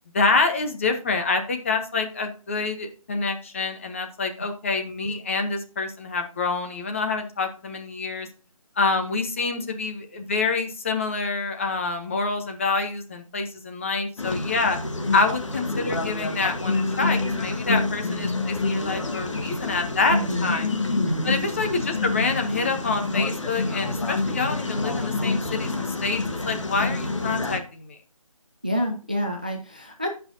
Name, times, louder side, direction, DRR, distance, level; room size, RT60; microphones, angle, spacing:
voice 1, 0.1-8.3 8.8-14.8 15.1-20.7 21.2-28.0, left 4 dB, 20° left, 5 dB, 0.9 m, -27 dB
sound 1, 14.2-27.6, left 3 dB, 60° left, 1.5 m, -27 dB
voice 2, 20.1-20.6 21.0-21.4 28.6-30.1, equal, 15° right, 3 dB, 0.4 m, -28 dB
16.0 x 5.6 x 2.7 m, 0.37 s
figure-of-eight pair, 165°, 18 cm